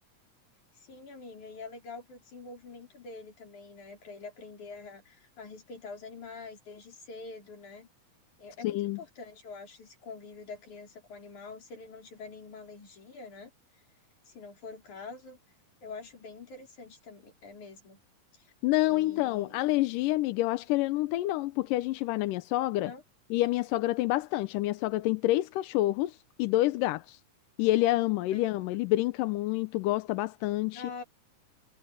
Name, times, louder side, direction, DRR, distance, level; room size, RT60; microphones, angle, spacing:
voice 1, 0.7-7.9 8.4-13.5 14.3-15.4 15.8-18.0 18.3-18.5 18.8-19.6 22.7-23.0 28.3-28.4 28.7-28.8 30.7-31.0, left 4 dB, 60° left, 6.1 m, -45 dB
voice 2, 8.6-9.0 18.6-22.9 23.3-27.2 27.6-30.8, left 17 dB, 85° left, 2.3 m, -28 dB
omnidirectional pair, 3.9 m